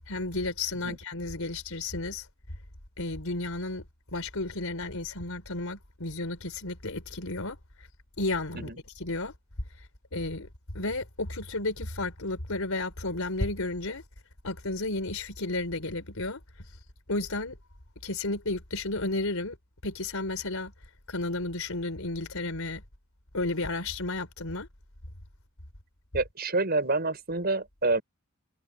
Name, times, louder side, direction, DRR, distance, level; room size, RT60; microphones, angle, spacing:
voice 1, 0.1-2.2 3.0-3.8 4.1-7.6 8.2-8.7 9.0-9.3 10.1-10.5 10.7-14.0 14.4-16.4 17.1-17.6 18.0-19.6 19.8-20.7 21.1-22.8 23.3-24.7, left 2 dB, 85° left, 3.9 m, -32 dB
voice 2, 26.1-28.0, right 3 dB, 50° right, 6.2 m, -28 dB
head